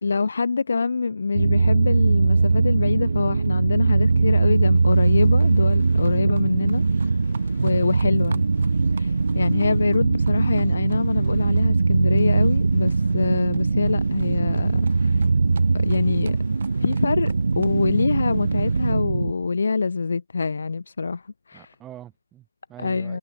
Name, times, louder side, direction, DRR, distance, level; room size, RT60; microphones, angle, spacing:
voice 1, 0.0-7.2 7.6-8.4 8.9-15.2 15.7-16.4 16.8-21.7 22.8-23.2, left 4 dB, 70° left, 0.4 m, -25 dB
sound 1, 1.3-19.3, right 4 dB, 85° right, 0.5 m, -21 dB
Livestock farm animals working animals, 2.1-18.2, right 5 dB, 55° right, 1.5 m, -51 dB
sound 2, 4.4-18.9, left 6 dB, 55° left, 7.5 m, -58 dB
voice 2, 21.5-23.2, right 12 dB, 10° right, 0.5 m, -44 dB
hypercardioid pair, 170°, 0 cm